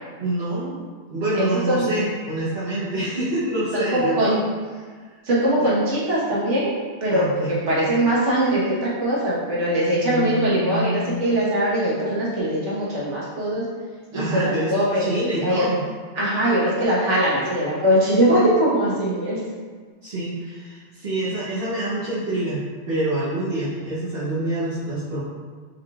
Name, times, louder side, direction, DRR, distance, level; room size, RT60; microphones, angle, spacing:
voice 1, 0.2-0.8 1.1-4.3 5.6-5.7 7.1-7.6 10.0-11.2 14.1-15.8 18.8-19.3 20.0-22.6 22.9-25.2, right 1 dB, 55° right, -10 dB, 1.2 m, -26 dB
voice 2, 1.4-1.9 3.7-4.4 5.2-13.6 14.1-15.1 15.4-15.6 16.1-19.4, right 1 dB, 85° right, -7 dB, 1.6 m, -21 dB
5.4 x 3.5 x 2.4 m, 1.5 s
omnidirectional pair, 1.2 m